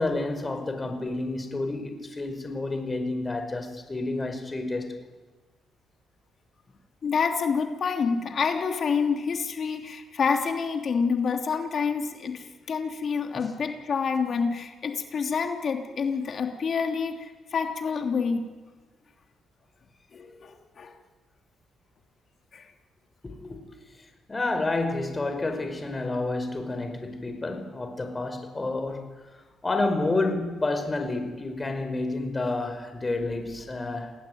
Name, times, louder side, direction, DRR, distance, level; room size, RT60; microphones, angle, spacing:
voice 1, 0.0-5.0 23.2-23.6 24.3-29.1 29.6-34.1, left 2 dB, 25° left, 5.2 m, -29 dB
voice 2, 7.0-18.5 20.1-20.9 22.5-22.7, left 5 dB, 50° left, 3.1 m, -28 dB
28.0 x 18.5 x 9.5 m
cardioid pair, 90°, 0 cm